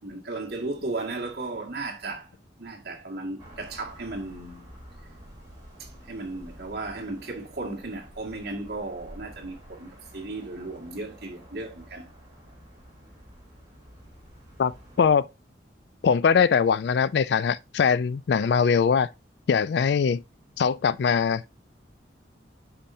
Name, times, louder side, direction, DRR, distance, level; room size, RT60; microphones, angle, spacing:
voice 1, 0.0-2.3 2.6-4.7 5.8-12.1, right 2 dB, 55° right, 2.0 m, -35 dB
sound 1, 3.4-15.1, equal, 20° right, 3.5 m, -49 dB
voice 2, 16.0-19.1 19.5-20.2 20.6-21.4, left 6 dB, 60° left, 0.3 m, -21 dB
8.6 x 5.7 x 2.7 m
head